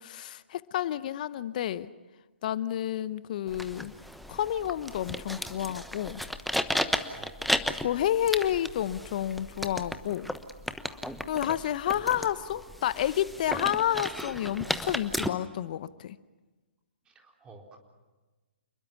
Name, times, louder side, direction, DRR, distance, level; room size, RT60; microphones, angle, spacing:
voice 1, 0.0-1.9 2.4-3.9 4.3-6.2 7.8-10.3 11.3-16.2, left 11 dB, 45° left, 16 dB, 0.8 m, -30 dB
sound 1, 3.5-15.3, equal, ahead, 1.1 m, -34 dB
voice 2, 17.0-17.8, right 3 dB, 15° right, 1 dB, 4.1 m, -51 dB
28.5 x 21.0 x 7.1 m, 1.2 s
figure-of-eight pair, 125°, 6 cm